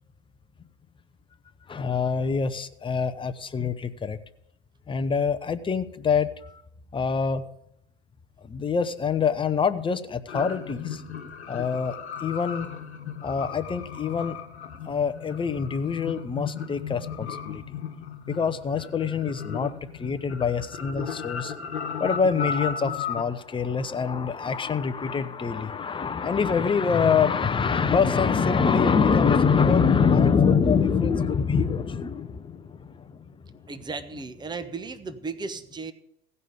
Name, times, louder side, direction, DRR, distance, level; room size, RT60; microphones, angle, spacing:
voice 1, 1.7-4.2 4.9-6.6 6.9-7.4 8.4-11.0 11.5-12.7 13.2-14.4 14.9-17.8 18.3-21.5 22.0-33.6, left 6 dB, 15° left, 11 dB, 0.8 m, -25 dB
sound 1, 10.3-23.2, left 7 dB, 85° left, 1.4 m, -35 dB
voice 2, 33.7-35.9, right 4 dB, 15° right, 10 dB, 0.9 m, -35 dB
16.0 x 5.5 x 8.1 m, 0.79 s
hypercardioid pair, 85°, 32 cm